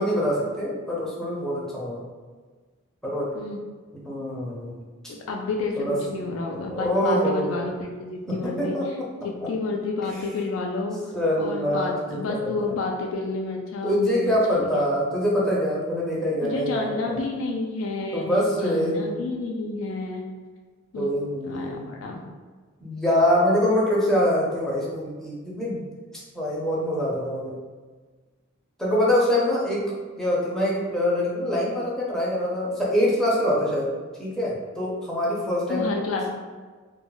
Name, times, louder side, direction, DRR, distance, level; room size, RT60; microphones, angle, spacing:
voice 1, 0.0-2.0 3.0-3.3 3.9-4.7 5.0-5.1 5.8-6.0 6.7-7.6 8.3-9.1 11.1-12.8 13.8-17.2 18.1-19.0 21.0-21.9 22.8-25.8 26.1-27.6 28.8-29.8 30.2-33.9 34.2-35.9, equal, ahead, -6 dB, 0.6 m, -24 dB
voice 2, 5.1-9.0 9.2-14.8 16.4-18.4 18.6-20.3 20.9-21.1 21.4-22.3 35.7-36.3, left 3 dB, 70° left, 1 dB, 0.3 m, -30 dB
2.3 x 2.1 x 3.8 m, 1.4 s
head